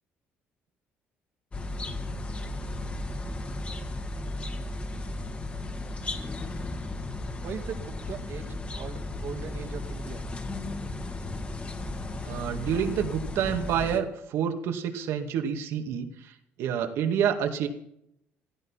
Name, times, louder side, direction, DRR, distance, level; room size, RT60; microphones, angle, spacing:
sound 1, 1.5-14.0, left 2 dB, 25° left, 2.2 m, -35 dB
voice 1, 7.4-10.3, right 7 dB, 55° right, 7 dB, 2.2 m, -39 dB
voice 2, 12.2-16.1 16.6-17.7, right 8 dB, 75° right, 5 dB, 2.3 m, -28 dB
16.5 x 14.5 x 5.8 m, 0.76 s
cardioid pair, 105°, 5 cm